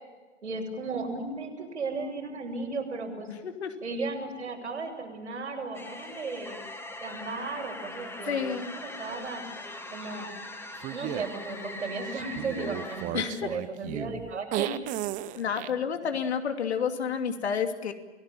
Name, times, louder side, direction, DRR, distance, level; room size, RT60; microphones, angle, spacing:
voice 1, 0.4-3.3 3.8-6.6 7.0-9.4 9.9-10.3 10.9-14.7, right 3 dB, 80° right, 1 dB, 7.5 m, -35 dB
sound 1, 5.7-13.2, left 2 dB, 5° left, 2.1 m, -41 dB
voice 2, 8.2-8.7 13.1-13.5 15.3-17.9, left 7 dB, 65° left, 6 dB, 2.8 m, -30 dB
sound 2, 10.8-11.2 12.1-15.7, right 15 dB, 20° right, 0.8 m, -34 dB
28.5 x 17.5 x 7.3 m, 1.3 s
figure-of-eight pair, 115°, 35 cm